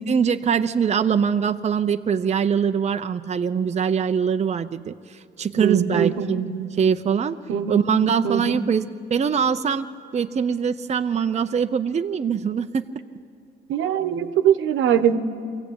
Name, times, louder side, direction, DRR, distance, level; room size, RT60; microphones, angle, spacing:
voice 1, 0.1-6.4 6.8-7.4 7.7-9.9 10.1-12.9, right 7 dB, 35° right, 8 dB, 0.7 m, -23 dB
voice 2, 5.6-6.7 7.5-7.9 8.2-8.7 13.7-15.2, right 8 dB, 80° right, 10 dB, 1.2 m, -22 dB
24.0 x 16.0 x 8.7 m, 2.3 s
cardioid pair, 90°, 20 cm